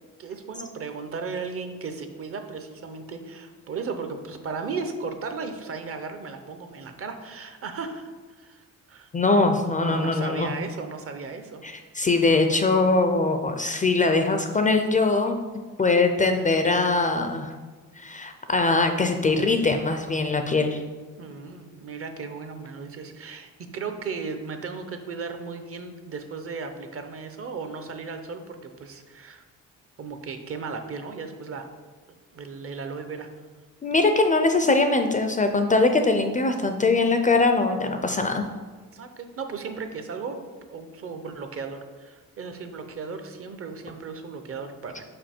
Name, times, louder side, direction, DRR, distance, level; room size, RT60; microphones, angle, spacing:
voice 1, 0.2-9.1 9.8-11.6 21.2-29.4 30.0-31.7 32.3-33.3 38.9-45.0, right 4 dB, 45° right, 7 dB, 0.7 m, -36 dB
voice 2, 9.1-10.5 11.6-15.4 15.8-17.5 18.0-20.8 33.8-38.4, left 3 dB, 25° left, 6 dB, 0.4 m, -22 dB
5.2 x 5.2 x 4.3 m, 1.4 s
cardioid pair, 135°, 33 cm